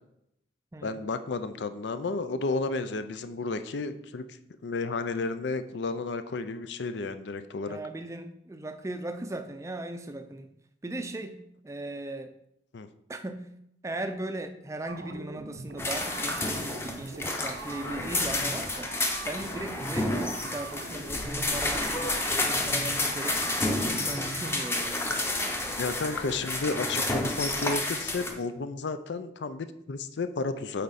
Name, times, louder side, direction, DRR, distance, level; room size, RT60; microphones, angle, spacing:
voice 1, 0.8-4.2 4.6-7.8 12.7-12.9 25.8-30.8, left 3 dB, 80° left, 11 dB, 0.5 m, -32 dB
voice 2, 7.7-10.5 10.8-12.3 13.1-13.5 13.8-18.9 19.3-25.2, right 2 dB, 15° right, 8 dB, 0.4 m, -38 dB
sound 1, 14.9-24.9, right 3 dB, 80° right, 0.7 m, -43 dB
sound 2, 15.8-28.3, left 2 dB, 15° left, 0.7 m, -30 dB
8.3 x 4.3 x 4.1 m, 0.78 s
head